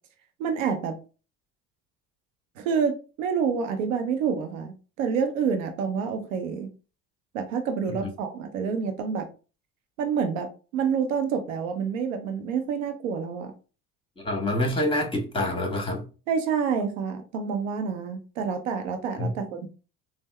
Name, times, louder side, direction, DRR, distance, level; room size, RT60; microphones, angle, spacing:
voice 1, 0.4-1.0 2.6-6.7 7.3-9.3 10.0-13.5 16.3-19.7, right 6 dB, 90° right, 0.7 m, -28 dB
voice 2, 14.2-16.0 19.2-19.3, left 1 dB, 15° left, 1.3 m, -26 dB
3.5 x 2.1 x 3.2 m
hypercardioid pair, 70°, 37 cm